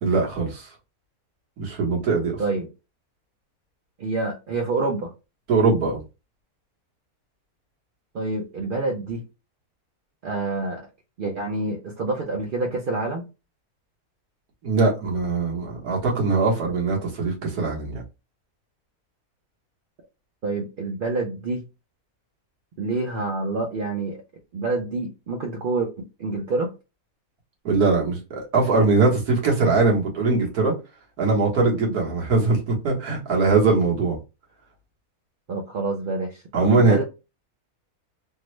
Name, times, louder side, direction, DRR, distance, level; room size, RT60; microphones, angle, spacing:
voice 1, 0.0-0.7 1.6-2.4 5.5-6.0 14.6-18.0 27.6-30.7 31.2-34.2 36.5-37.0, right 3 dB, 85° right, 1.7 m, -21 dB
voice 2, 4.0-5.1 8.1-9.2 10.2-10.8 11.2-13.2 20.4-21.6 22.8-24.2 24.5-26.7 35.5-37.0, right 3 dB, 65° right, 0.5 m, -27 dB
3.7 x 2.0 x 3.0 m
omnidirectional pair, 1.6 m